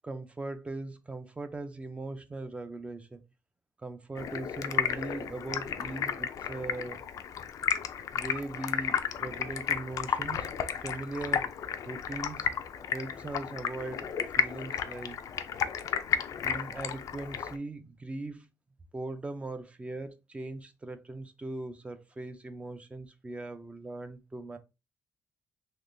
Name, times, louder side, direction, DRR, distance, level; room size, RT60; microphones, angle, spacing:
voice 1, 0.0-3.2 3.8-7.0 8.1-11.5 11.8-12.5 12.9-15.2 16.4-18.5 18.9-24.6, right 2 dB, 20° right, 0.4 m, -40 dB
Stream, 4.2-17.6, left 8 dB, 65° left, 0.3 m, -33 dB
3.5 x 2.9 x 2.5 m
cardioid pair, 115°, 6 cm